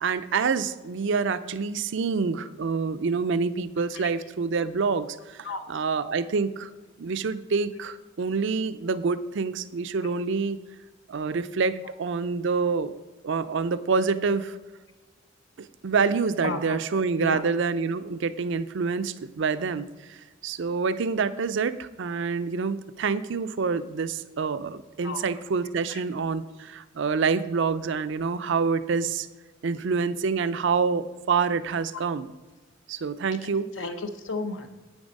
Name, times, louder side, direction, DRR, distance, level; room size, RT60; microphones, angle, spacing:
voice 1, 0.0-5.4 5.7-6.7 7.0-10.6 11.1-12.9 13.2-14.6 15.6-20.2 20.4-29.3 29.6-32.3 32.9-33.7, right 5 dB, 65° right, 13 dB, 0.5 m, -27 dB
voice 2, 16.4-16.8 17.2-17.4 25.0-25.2 25.9-26.0 31.9-32.1 33.7-34.7, left 3 dB, 70° left, 7 dB, 0.9 m, -33 dB
8.7 x 7.1 x 5.3 m, 1.3 s
head